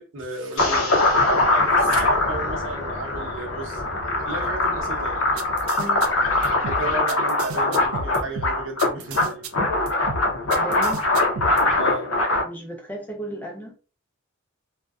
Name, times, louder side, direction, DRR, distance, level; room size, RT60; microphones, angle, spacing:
voice 1, 0.0-3.8 4.3-5.2 6.5-9.4 11.7-12.1, right 2 dB, 70° right, 0.7 m, -33 dB
sound 1, 0.6-12.4, left 2 dB, 85° left, 0.6 m, -22 dB
sound 2, 5.4-11.6, right 3 dB, 85° right, 0.3 m, -34 dB
voice 2, 5.8-6.1 10.6-11.0 12.4-13.7, right 1 dB, 10° left, 0.5 m, -34 dB
2.5 x 2.1 x 2.3 m
head